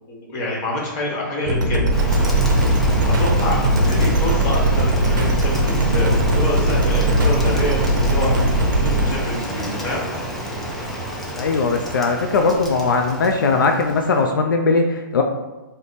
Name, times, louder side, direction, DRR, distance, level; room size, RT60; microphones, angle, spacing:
voice 1, 0.1-1.8 3.0-8.3 8.8-10.1, left 1 dB, 25° left, -3 dB, 1.0 m, -27 dB
sound 1, 1.4-9.1, right 1 dB, 60° right, 0.6 m, -19 dB
Rain, 1.9-14.3, equal, ahead, 0.3 m, -28 dB
voice 2, 11.4-15.2, left 4 dB, 75° left, 3 dB, 0.4 m, -19 dB
3.3 x 2.1 x 4.0 m, 1.1 s
hypercardioid pair, 145°, 11 cm